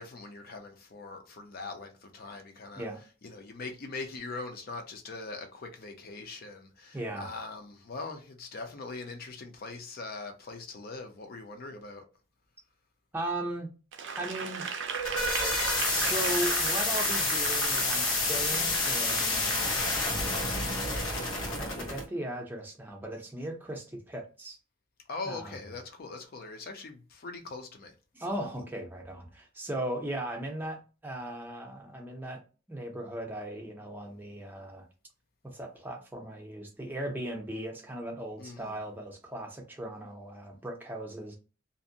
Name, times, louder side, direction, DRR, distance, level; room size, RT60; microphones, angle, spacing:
voice 1, 0.0-2.8 3.2-12.1 25.1-27.9 38.4-38.8, left 3 dB, 50° left, 0.5 m, -41 dB
voice 2, 6.9-7.3 13.1-13.7 14.2-14.6 15.9-19.6 20.0-20.8 21.6-24.6 25.2-25.6 28.1-32.4 32.7-34.9 35.5-41.3, right 1 dB, 10° right, 0.6 m, -37 dB
Applause / Crowd, 13.9-19.6 20.2-20.3, right 6 dB, 60° right, 0.4 m, -36 dB
sound 1, 14.7-22.0, left 2 dB, 85° left, 1.0 m, -29 dB
2.6 x 2.1 x 2.6 m
head